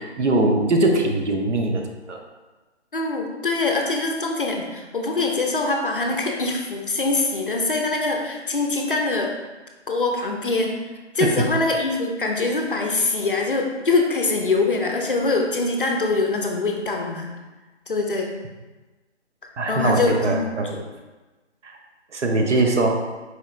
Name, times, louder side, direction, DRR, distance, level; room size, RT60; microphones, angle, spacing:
voice 1, 0.0-1.8 2.1-2.2 11.2-11.3 19.6-20.7 21.6-21.7 22.1-23.0, right 2 dB, 80° right, 2 dB, 0.8 m, -21 dB
voice 2, 2.9-9.3 9.9-10.8 11.1-17.3 17.9-18.3 19.7-20.4 20.7-20.8, left 3 dB, 50° left, 2 dB, 0.5 m, -23 dB
4.4 x 3.1 x 2.4 m, 1.2 s
hypercardioid pair, 180°, 35 cm